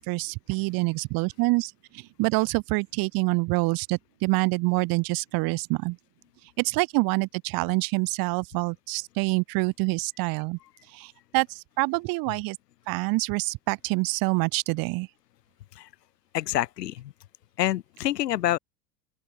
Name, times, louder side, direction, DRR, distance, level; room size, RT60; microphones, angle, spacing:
voice 1, 0.0-1.7 2.2-6.0 6.6-10.6 10.9-11.5 11.8-12.6 12.9-15.1, right 25 dB, 45° right, 1.0 m, -26 dB
voice 2, 16.3-17.1 17.6-18.6, left 13 dB, 75° left, 1.7 m, -27 dB
open air
hypercardioid pair, 85°, 49 cm